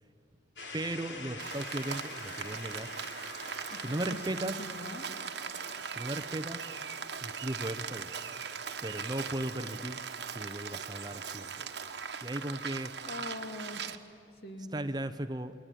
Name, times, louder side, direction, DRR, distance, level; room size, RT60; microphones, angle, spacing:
sound 1, 0.6-10.4, left 3 dB, 70° left, 3.2 m, -47 dB
voice 1, 0.7-2.9 3.7-4.6 5.8-6.6 7.2-8.1 8.8-10.0 10.3-11.7 12.2-12.9 14.7-15.5, right 1 dB, 20° right, 11 dB, 0.7 m, -37 dB
Rain, 1.4-14.0, right 6 dB, 60° right, 1.3 m, -40 dB
voice 2, 3.7-5.1 13.0-13.9 14.4-14.7, left 1 dB, 55° left, 5 dB, 2.7 m, -42 dB
29.0 x 20.5 x 9.1 m, 2.6 s
head